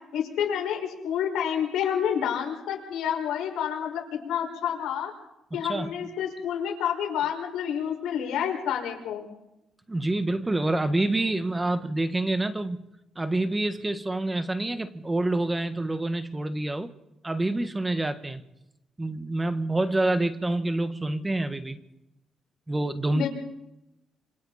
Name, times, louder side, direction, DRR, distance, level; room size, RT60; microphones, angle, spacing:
voice 1, 0.1-5.1 5.5-9.3 23.1-23.3, left 9 dB, 85° left, 1 dB, 5.5 m, -29 dB
voice 2, 5.5-6.0 9.9-12.9 13.1-16.9 17.2-18.4 19.0-21.8 22.7-23.3, right 2 dB, 15° right, 10 dB, 1.5 m, -27 dB
27.5 x 26.0 x 4.3 m, 0.91 s
cardioid pair, 90°, 0 cm